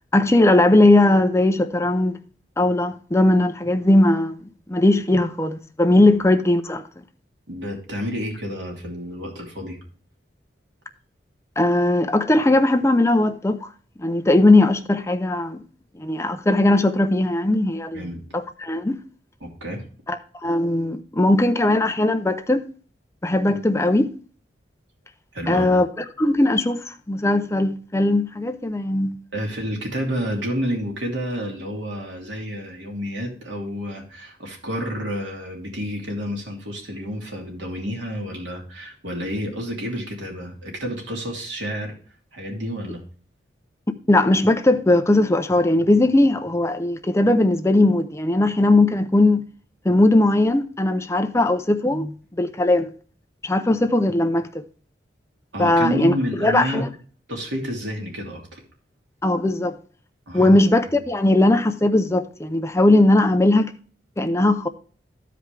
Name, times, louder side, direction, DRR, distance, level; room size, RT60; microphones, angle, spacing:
voice 1, 0.1-2.2 2.6-4.4 4.7-6.8 11.6-13.7 14.0-15.6 16.0-18.0 18.3-19.0 20.1-22.6 23.2-24.1 25.5-29.2 44.1-49.4 49.8-52.9 53.4-54.6 55.6-56.1 56.4-56.9 59.2-59.8 60.3-63.7 64.2-64.7, left 2 dB, 15° left, 0.5 m, -19 dB
voice 2, 7.5-9.8 17.9-18.2 19.4-19.8 25.3-25.7 29.3-42.0 42.3-43.0 55.5-56.8 57.3-58.6 60.3-60.6, equal, 85° right, 2.9 m, -29 dB
13.5 x 5.1 x 3.3 m
head